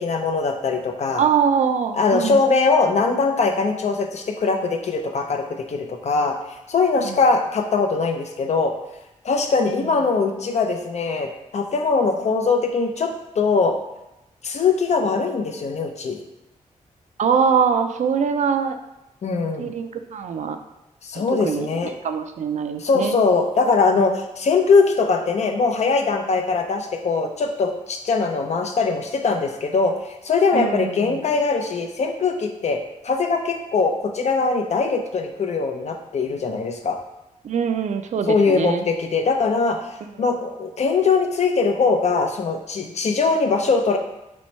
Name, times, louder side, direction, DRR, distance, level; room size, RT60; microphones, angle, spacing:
voice 1, 0.0-1.2 1.9-6.4 6.7-8.7 9.2-13.7 14.4-16.2 19.2-19.7 21.0-21.9 22.8-32.8 33.0-37.0 38.3-44.0, left 4 dB, 55° left, 4 dB, 0.5 m, -21 dB
voice 2, 1.2-2.4 7.0-7.2 9.7-10.0 17.2-18.8 19.6-20.6 21.2-23.2 30.5-31.2 37.4-38.8 40.0-40.1, right 6 dB, 60° right, 7 dB, 0.4 m, -23 dB
3.1 x 3.1 x 4.2 m, 0.92 s
cardioid pair, 80°, 14 cm